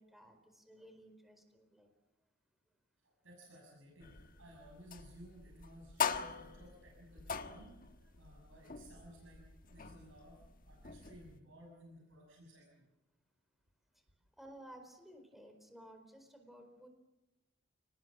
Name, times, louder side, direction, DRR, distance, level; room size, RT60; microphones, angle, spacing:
voice 1, 0.0-1.9 14.4-16.9, right 1 dB, ahead, 5 dB, 4.5 m, -56 dB
voice 2, 3.0-10.4 10.6-12.9, equal, 80° right, 0 dB, 6.7 m, -57 dB
sound 1, 4.0-11.4, left 6 dB, 45° left, 1.5 m, -43 dB
30.0 x 19.5 x 7.5 m, 0.96 s
head